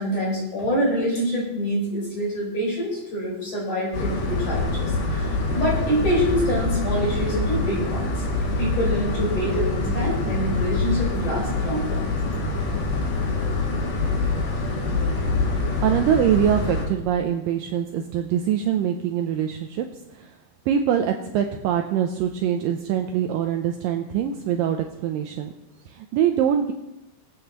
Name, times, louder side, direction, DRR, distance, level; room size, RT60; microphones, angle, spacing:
voice 1, 0.0-8.2 8.6-12.0, equal, 40° left, -5 dB, 5.6 m, -26 dB
sound 1, 3.9-16.9, left 3 dB, 85° left, 3.9 m, -25 dB
voice 2, 14.8-15.2 15.8-19.9 20.1-20.3 20.7-25.5 25.9-26.7, right 9 dB, 85° right, 5 dB, 1.9 m, -24 dB
23.5 x 8.5 x 3.0 m, 0.94 s
omnidirectional pair, 4.7 m